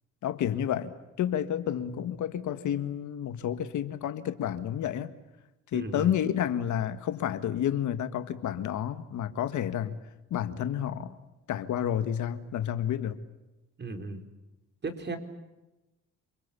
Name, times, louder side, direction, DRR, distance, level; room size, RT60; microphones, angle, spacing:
voice 1, 0.2-5.1 5.7-10.0 10.3-11.2 11.5-13.2, left 10 dB, 75° left, 1.9 m, -30 dB
voice 2, 5.7-6.1 13.8-14.2 14.8-15.2, right 3 dB, 35° right, 4.3 m, -35 dB
28.5 x 22.0 x 8.6 m
cardioid pair, 90°, 30 cm